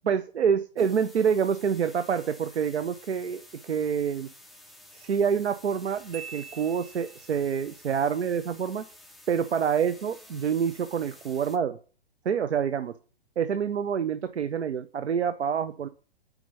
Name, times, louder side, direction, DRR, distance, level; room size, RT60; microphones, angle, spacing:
voice 1, 0.1-4.3 4.9-8.9 9.3-11.8 12.2-13.0 13.4-15.9, right 7 dB, 85° right, 11 dB, 0.7 m, -27 dB
sound 1, 0.8-11.6, left 1 dB, ahead, 0.4 m, -51 dB
Marimba xylophone, 6.1-7.6, right 6 dB, 40° right, 3.5 m, -44 dB
6.3 x 5.1 x 6.7 m, 0.40 s
hypercardioid pair, 125°, 32 cm